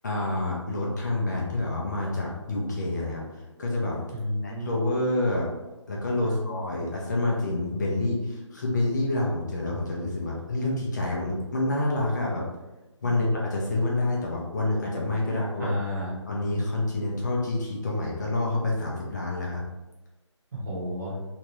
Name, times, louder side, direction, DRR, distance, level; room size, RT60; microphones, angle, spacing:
voice 1, 0.0-3.2 3.6-4.0 4.4-5.5 5.9-12.5 13.0-15.7 16.3-19.6, left 2 dB, 35° left, -3 dB, 0.6 m, -28 dB
voice 2, 4.1-4.8 6.2-6.6 15.6-16.2 20.5-21.2, equal, 35° right, -5 dB, 0.9 m, -32 dB
2.9 x 2.3 x 3.1 m, 1.1 s
figure-of-eight pair, 160°, 16 cm